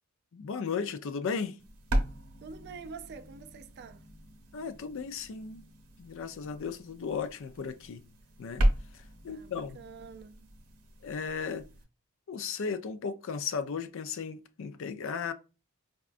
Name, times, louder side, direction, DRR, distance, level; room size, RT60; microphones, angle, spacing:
voice 1, 0.3-1.6 4.5-5.6 6.0-8.0 8.4-8.7 9.2-9.8 11.0-11.6 12.3-15.3, left 5 dB, 60° left, 0.4 m, -35 dB
sound 1, 1.6-11.8, right 1 dB, 85° right, 0.8 m, -36 dB
voice 2, 2.4-4.0 9.2-10.5, right 5 dB, 50° right, 0.3 m, -46 dB
4.8 x 2.2 x 2.4 m
head